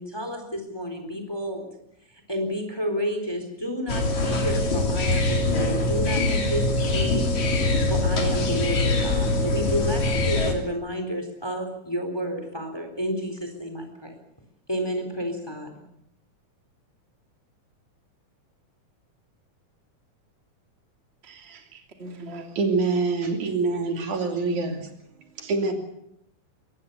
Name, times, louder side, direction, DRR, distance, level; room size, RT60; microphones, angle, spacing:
voice 1, 0.0-1.7 2.3-7.3 7.9-14.1 14.7-15.8, equal, 5° left, 6 dB, 3.7 m, -30 dB
sound 1, 3.9-10.5, left 2 dB, 65° left, 4.2 m, -23 dB
voice 2, 21.2-22.5 25.6-25.7, right 1 dB, 20° right, 3 dB, 2.5 m, -42 dB
voice 3, 22.6-24.9 25.4-25.7, right 3 dB, 70° right, 4 dB, 4.1 m, -25 dB
23.5 x 19.5 x 6.9 m, 0.76 s
omnidirectional pair, 3.6 m